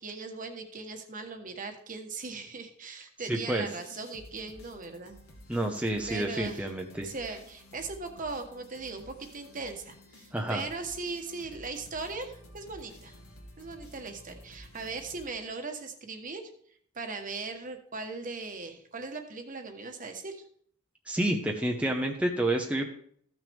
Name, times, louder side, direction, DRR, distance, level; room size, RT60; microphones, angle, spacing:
voice 1, 0.0-5.2 6.1-6.7 7.0-13.2 13.6-16.4 16.9-20.4, right 3 dB, 40° right, 6 dB, 1.2 m, -39 dB
voice 2, 3.3-3.6 5.5-7.1 10.3-10.6 21.1-22.9, right 1 dB, 5° right, 1 dB, 0.7 m, -29 dB
sound 1, 3.7-15.8, left 1 dB, 90° left, 2.1 m, -52 dB
14.5 x 6.2 x 3.5 m, 0.62 s
head